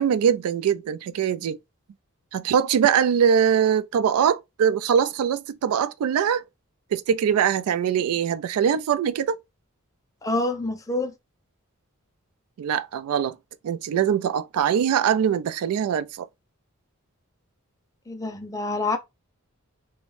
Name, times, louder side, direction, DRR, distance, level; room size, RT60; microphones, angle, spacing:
voice 1, 0.0-1.6 2.3-6.4 6.9-9.4 12.6-13.4 13.6-16.3, right 8 dB, 80° right, 0.3 m, -22 dB
voice 2, 10.2-11.1 18.1-19.0, left 2 dB, 15° left, 0.3 m, -27 dB
2.5 x 2.1 x 3.1 m
head